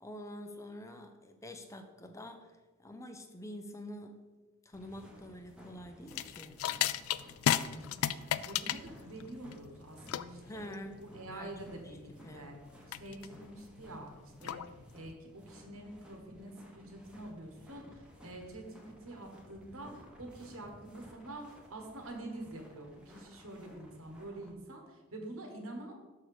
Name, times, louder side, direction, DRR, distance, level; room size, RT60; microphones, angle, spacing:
voice 1, 0.0-2.5 2.8-4.2 4.7-6.6 10.4-12.5, left 1 dB, 15° left, 6 dB, 0.5 m, -47 dB
sound 1, 4.7-24.5, equal, 5° right, 1.0 m, -57 dB
sound 2, 6.1-15.1, left 11 dB, 90° left, 0.3 m, -35 dB
voice 2, 7.8-10.7 11.0-12.5 12.9-14.1 14.4-14.6 14.9-26.0, right 1 dB, 85° right, 2 dB, 1.5 m, -47 dB
6.3 x 5.6 x 4.9 m, 1.2 s
head